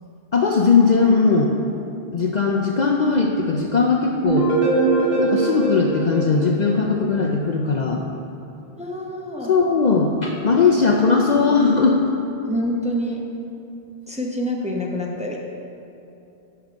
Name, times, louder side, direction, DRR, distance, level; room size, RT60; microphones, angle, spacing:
voice 1, 0.3-1.5 2.1-4.5 5.2-8.0 9.5-12.0, left 4 dB, 50° left, 1 dB, 0.6 m, -18 dB
sound 1, 4.2-7.2, right 3 dB, 60° right, 2.4 m, -22 dB
voice 2, 8.8-9.5 12.4-13.2 14.1-15.4, equal, 5° right, -1 dB, 0.7 m, -26 dB
8.9 x 6.5 x 5.1 m, 2.7 s
omnidirectional pair, 1.1 m